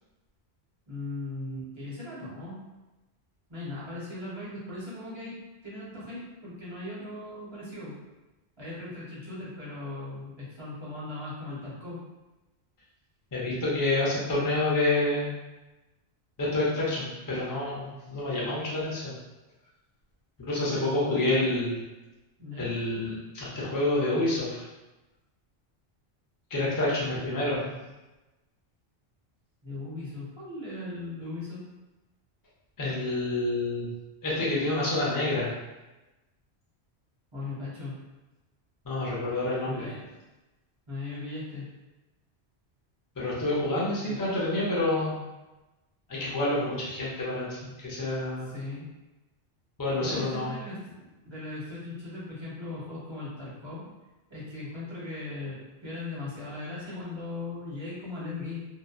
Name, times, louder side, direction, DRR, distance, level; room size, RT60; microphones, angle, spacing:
voice 1, 0.9-2.6 3.5-5.4 5.6-7.9 8.6-12.0 21.1-21.5 22.4-23.0 27.1-27.9 29.6-31.6 37.3-38.0 39.6-40.1 40.9-41.7 44.0-44.2 48.4-48.8 50.0-53.8 54.3-58.7, left 2 dB, 25° right, -8 dB, 0.8 m, -38 dB
voice 2, 13.3-15.3 16.4-19.1 20.4-21.7 22.6-24.6 26.5-27.6 32.8-33.9 34.2-35.5 38.8-39.9 43.2-45.2 46.1-48.5 49.8-50.6, left 2 dB, 25° left, -7 dB, 0.5 m, -28 dB
2.7 x 2.2 x 2.3 m, 1.1 s
omnidirectional pair, 1.1 m